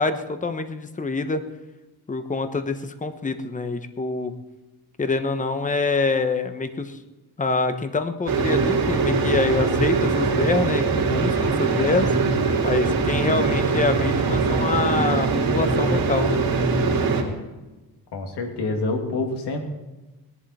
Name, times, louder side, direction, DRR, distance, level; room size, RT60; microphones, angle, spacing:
voice 1, 0.0-1.4 2.1-4.3 5.0-7.0 7.4-12.1 12.6-16.4, left 3 dB, 20° left, 9 dB, 1.0 m, -25 dB
sound 1, 8.3-17.2, right 4 dB, 60° right, 3.0 m, -22 dB
voice 2, 18.1-19.6, left 2 dB, 90° left, 3 dB, 2.5 m, -27 dB
19.0 x 11.0 x 4.3 m, 1.1 s
cardioid pair, 130°, 39 cm